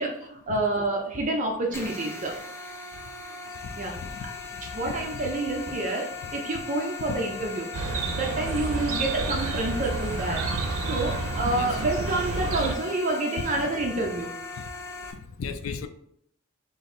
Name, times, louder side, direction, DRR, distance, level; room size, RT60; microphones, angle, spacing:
voice 1, 0.0-2.4 3.8-4.1 4.7-7.7 8.1-10.5 10.9-14.3, right 2 dB, 35° right, 0 dB, 0.5 m, -28 dB
sound 1, 1.7-15.1, left 5 dB, 15° left, 0.5 m, -39 dB
voice 2, 3.6-4.4 4.8-4.9 7.1-7.2 10.5-10.6 11.4-11.8 14.6-14.7 15.1-15.9, left 5 dB, 70° left, 9 dB, 0.4 m, -36 dB
Chirp tweet, 7.7-12.8, right 3 dB, 90° right, 0.5 m, -30 dB
3.9 x 2.6 x 4.0 m, 0.70 s
head